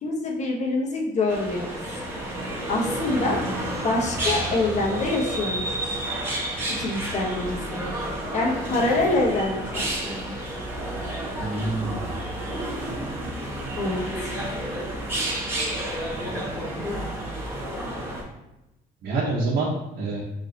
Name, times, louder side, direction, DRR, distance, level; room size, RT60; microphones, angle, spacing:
voice 1, 0.0-2.0 2.7-3.4 3.8-6.0 6.8-7.8 8.3-10.3 13.8-14.0, left 2 dB, 45° left, -1 dB, 1.0 m, -26 dB
sound 1, 1.3-18.2, right 1 dB, 15° right, 1.2 m, -30 dB
voice 2, 11.4-12.2 19.0-20.2, right 2 dB, 65° right, -6 dB, 0.9 m, -27 dB
3.3 x 2.7 x 3.8 m, 0.92 s
cardioid pair, 110°, 17 cm